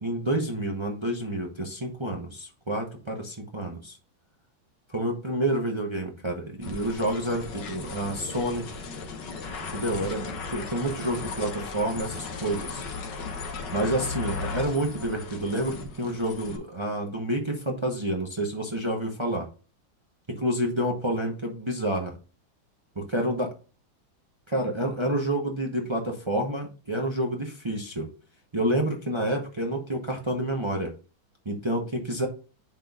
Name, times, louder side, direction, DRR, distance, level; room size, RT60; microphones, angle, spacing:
voice 1, 0.0-4.0 4.9-8.8 9.7-12.8 13.7-19.5 20.3-22.1 23.1-23.5 24.5-28.1 28.5-30.9 31.4-32.3, right 1 dB, 45° right, 1 dB, 0.3 m, -29 dB
sound 1, 6.6-16.6, left 4 dB, 65° left, 1.7 m, -36 dB
11.0 x 4.0 x 2.4 m, 0.36 s
omnidirectional pair, 2.2 m